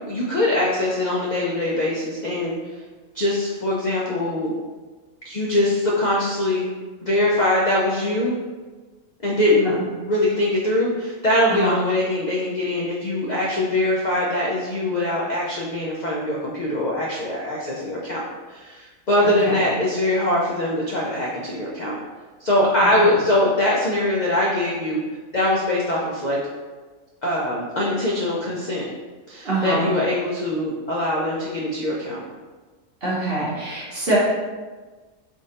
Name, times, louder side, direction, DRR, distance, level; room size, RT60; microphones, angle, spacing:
voice 1, 0.0-2.6 3.1-4.5 5.2-6.6 7.0-8.3 9.2-9.8 10.1-18.2 18.5-22.0 22.4-25.0 25.3-26.4 27.2-28.8 29.3-32.2, left 1 dB, 60° left, -4 dB, 0.4 m, -22 dB
voice 2, 19.2-19.6 22.8-22.9 29.4-29.8 33.0-34.2, right 2 dB, 50° right, -7 dB, 1.2 m, -24 dB
3.7 x 2.5 x 3.9 m, 1.3 s
omnidirectional pair, 1.4 m